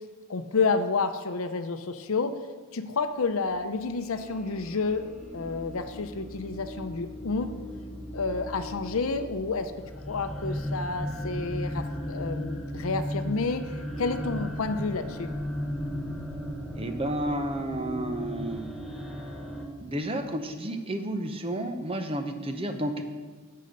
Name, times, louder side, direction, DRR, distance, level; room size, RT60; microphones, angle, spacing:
voice 1, 0.3-2.3 2.7-7.5 8.1-9.7 10.1-13.7 14.0-15.3, left 4 dB, 75° left, 9 dB, 0.6 m, -30 dB
sound 1, 3.4-19.7, equal, ahead, 1.1 m, -36 dB
voice 2, 16.8-18.7 19.8-23.0, right 1 dB, 25° right, 7 dB, 0.9 m, -31 dB
10.5 x 6.6 x 6.5 m, 1.5 s
head